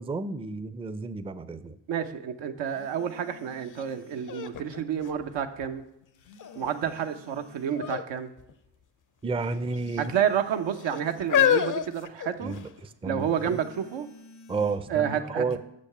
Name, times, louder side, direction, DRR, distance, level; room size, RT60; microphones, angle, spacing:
voice 1, 0.0-1.8 9.2-10.1 12.4-13.6 14.5-15.6, right 3 dB, 15° right, 12 dB, 0.5 m, -32 dB
voice 2, 1.9-5.8 6.5-8.3 10.0-12.5 13.0-14.1 14.9-15.6, right 8 dB, 80° right, 6 dB, 0.8 m, -29 dB
sound 1, 2.6-4.4 6.1-7.9 9.7-11.4 13.2-14.8, left 3 dB, 90° left, 1.2 m, -53 dB
sound 2, 3.7-3.8 4.3-5.8 6.4-6.9 7.7-8.1 8.4-8.5 9.4-10.1 10.8-12.8 13.6-13.7, left 9 dB, 45° left, 0.6 m, -28 dB
6.5 x 5.2 x 6.6 m, 0.83 s
supercardioid pair, 60°, 45 cm